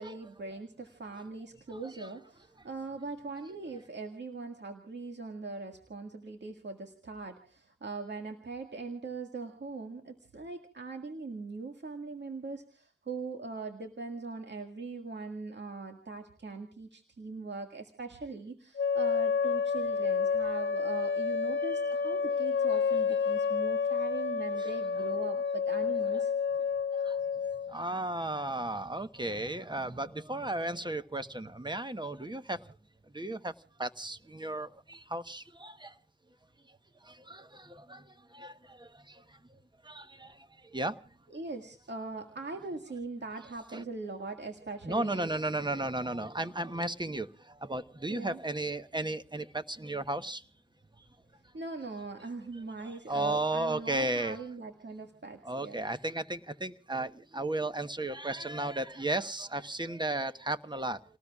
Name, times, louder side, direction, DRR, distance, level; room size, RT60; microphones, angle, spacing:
voice 1, 0.0-26.3 41.3-45.3 48.1-48.4 51.5-55.8, right 3 dB, 70° right, 1.8 m, -41 dB
voice 2, 1.7-2.1 21.7-21.8 22.9-23.0 24.6-24.8 27.0-27.2 27.7-32.7 33.1-33.5 33.8-35.9 37.0-39.2 39.5-39.6 39.8-40.5 40.7-41.1 43.7-43.8 44.8-50.4 52.8-54.4 55.4-61.0, right 2 dB, 25° right, 1.1 m, -35 dB
sound 1, 18.8-27.7, left 6 dB, 85° left, 0.7 m, -29 dB
29.5 x 19.0 x 2.4 m
cardioid pair, 50°, 19 cm